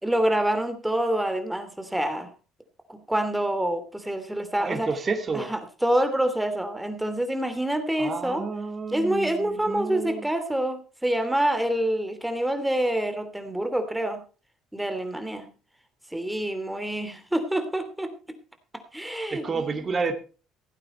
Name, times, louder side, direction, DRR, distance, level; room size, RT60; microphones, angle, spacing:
voice 1, 0.0-2.3 2.9-4.9 5.3-8.4 8.9-14.2 14.7-15.5 16.1-18.1 18.9-19.7, right 1 dB, 5° right, 8 dB, 2.9 m, -27 dB
voice 2, 4.6-5.5 8.0-10.3 19.2-20.1, right 4 dB, 35° right, 5 dB, 2.5 m, -30 dB
16.0 x 9.0 x 4.4 m, 0.36 s
supercardioid pair, 75°, 0 cm